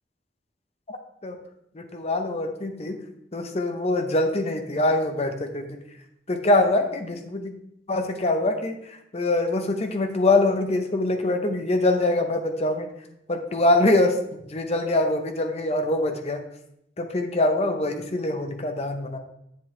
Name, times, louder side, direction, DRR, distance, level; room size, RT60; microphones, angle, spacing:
voice 1, 1.7-3.0 3.3-5.8 6.3-7.5 7.9-12.9 13.3-16.4 17.0-19.2, left 2 dB, 35° left, 6 dB, 0.8 m, -24 dB
7.8 x 7.4 x 3.2 m, 0.79 s
head